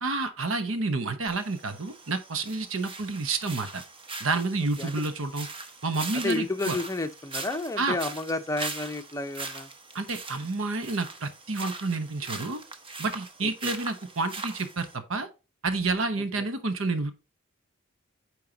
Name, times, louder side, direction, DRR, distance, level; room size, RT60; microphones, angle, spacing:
voice 1, 0.0-3.8 4.2-5.5 5.8-6.8 7.8-8.0 9.9-12.6 13.0-15.3 15.6-17.1, right 3 dB, 70° right, 1.0 m, -29 dB
sound 1, 1.3-15.0, right 3 dB, 25° right, 1.0 m, -41 dB
voice 2, 6.1-9.7 13.4-13.7, left 2 dB, 15° left, 0.7 m, -31 dB
8.8 x 4.7 x 2.8 m
head